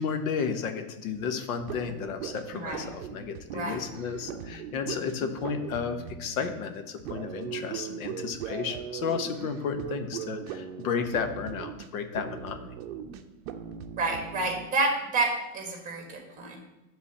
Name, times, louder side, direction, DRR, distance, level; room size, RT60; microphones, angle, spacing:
voice 1, 0.0-12.7, left 6 dB, 80° left, 7 dB, 1.2 m, -33 dB
sound 1, 1.1-14.7, right 8 dB, 45° right, 0.7 m, -39 dB
voice 2, 2.5-2.8 3.5-3.8 14.0-16.7, right 3 dB, 20° right, 2 dB, 1.7 m, -29 dB
9.9 x 4.0 x 6.9 m, 1.0 s
supercardioid pair, 160°, 42 cm